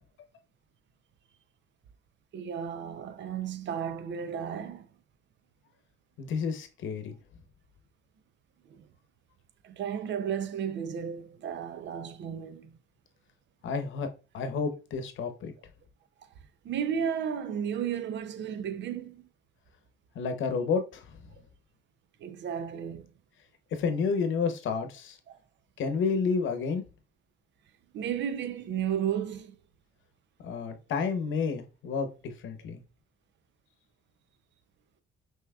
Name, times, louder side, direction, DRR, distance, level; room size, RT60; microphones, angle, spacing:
voice 1, 2.3-4.9 8.7-8.9 9.6-12.7 15.2-15.3 16.6-19.3 22.2-23.1 25.3-25.4 27.9-29.6, right 8 dB, 65° right, 0.6 m, -33 dB
voice 2, 6.2-7.1 13.6-14.1 14.3-15.5 20.1-21.0 23.7-25.2 25.8-26.9 30.4-32.8, left 5 dB, 75° left, 0.9 m, -30 dB
5.6 x 3.0 x 2.3 m
cardioid pair, 90°, 20 cm